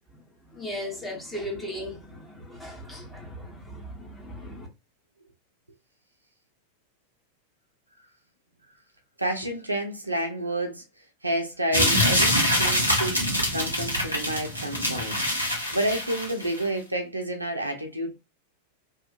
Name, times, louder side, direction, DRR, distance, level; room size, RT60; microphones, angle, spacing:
voice 1, 0.4-4.7, equal, 10° left, 1.2 m, -37 dB
voice 2, 9.2-10.8 11.2-13.2 13.5-15.2 15.5-18.1, right 1 dB, 85° right, 0.7 m, -29 dB
sound 1, 11.7-16.6, equal, 90° left, 0.9 m, -24 dB
2.8 x 2.5 x 2.5 m
figure-of-eight pair, 90°, 0 cm